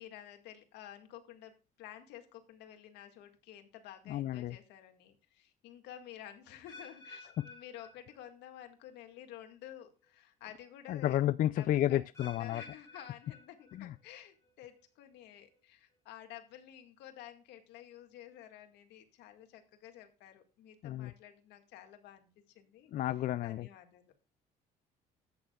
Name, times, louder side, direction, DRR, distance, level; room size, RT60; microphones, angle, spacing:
voice 1, 0.0-11.2 11.6-22.9 23.4-24.0, left 11 dB, 90° left, 1.9 m, -52 dB
voice 2, 4.1-4.6 7.4-7.5 10.9-12.6 13.7-13.9 20.8-21.1 22.9-23.7, left 12 dB, 55° left, 0.4 m, -31 dB
sound 1, 6.7-8.7 8.9-9.4 10.0-10.1 12.1-14.1 14.4-14.9 15.5-15.6, left 2 dB, 15° left, 4.3 m, -54 dB
14.0 x 9.2 x 2.4 m
cardioid pair, 110°, 17 cm